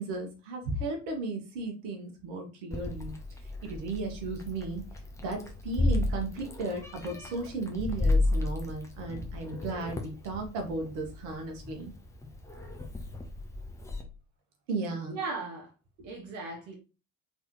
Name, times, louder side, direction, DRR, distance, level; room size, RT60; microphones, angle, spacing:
voice 1, 0.0-3.1 3.6-4.8 5.2-11.9 14.7-15.2 16.0-16.1, right 2 dB, 60° right, 1.4 m, -35 dB
Meow, 2.7-14.0, left 2 dB, 5° left, 1.0 m, -33 dB
voice 2, 15.1-15.7 16.0-16.8, right 3 dB, 45° right, 1.1 m, -37 dB
3.9 x 3.5 x 3.0 m
figure-of-eight pair, 65°, 41 cm